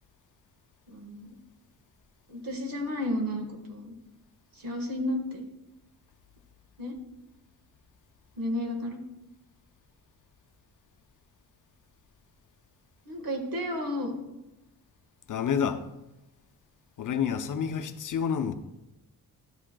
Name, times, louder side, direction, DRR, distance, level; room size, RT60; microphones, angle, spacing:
voice 1, 0.9-1.3 2.3-3.9 4.5-5.4 6.8-7.0 8.4-9.0 13.0-14.1, left 1 dB, 60° right, 1.6 m, -32 dB
voice 2, 15.3-15.8 17.0-18.5, left 7 dB, 55° left, 0.6 m, -28 dB
12.0 x 7.3 x 2.3 m
wide cardioid pair, 125°, 38 cm